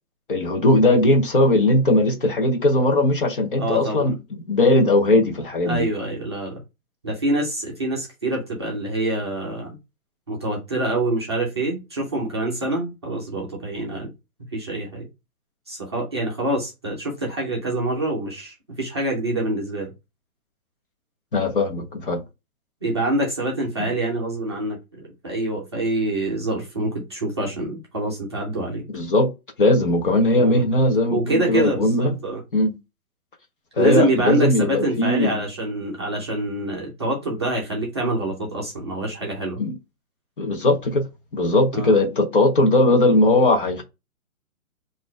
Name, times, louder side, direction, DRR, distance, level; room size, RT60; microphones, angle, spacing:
voice 1, 0.3-4.2 4.5-5.9 21.3-22.2 23.8-23.9 28.9-29.3 29.6-32.2 32.5-32.8 33.8-35.5 39.6-39.8 40.4-41.0 41.3-43.8, left 1 dB, 40° left, 0.7 m, -19 dB
voice 2, 3.6-4.1 5.6-6.6 7.0-9.8 10.3-14.1 14.5-15.1 15.7-19.9 22.8-28.8 30.4-30.6 31.1-32.4 33.8-39.6 41.7-41.9, right 1 dB, 20° right, 0.6 m, -26 dB
4.0 x 2.6 x 4.8 m
hypercardioid pair, 170°, 42 cm